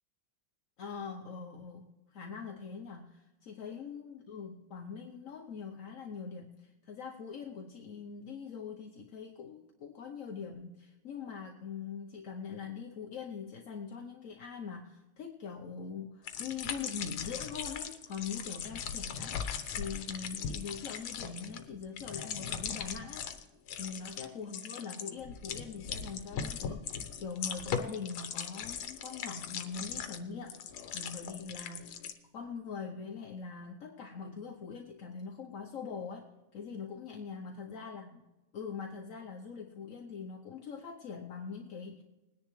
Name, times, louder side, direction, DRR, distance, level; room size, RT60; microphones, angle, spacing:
voice 1, 0.8-19.4 19.7-23.3 23.8-30.6 30.9-32.0 32.3-38.2 38.5-42.0, left 6 dB, 55° left, 1 dB, 1.0 m, -43 dB
sound 1, 16.3-23.4 23.7-24.3 24.5-32.1, left 7 dB, 85° left, 1.8 m, -39 dB
20.5 x 10.0 x 3.2 m, 1.1 s
omnidirectional pair, 2.2 m